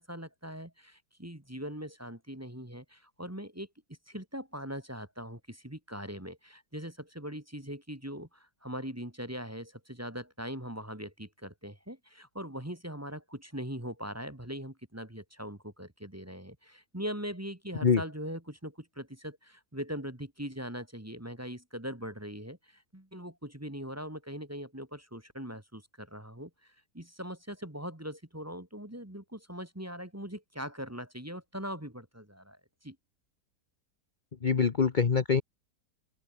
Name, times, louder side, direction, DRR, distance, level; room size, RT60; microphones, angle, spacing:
voice 1, 0.0-3.7 4.1-33.0, equal, 10° right, 1.9 m, -41 dB
voice 2, 34.4-35.4, left 6 dB, 35° left, 0.9 m, -24 dB
open air
omnidirectional pair, 1.8 m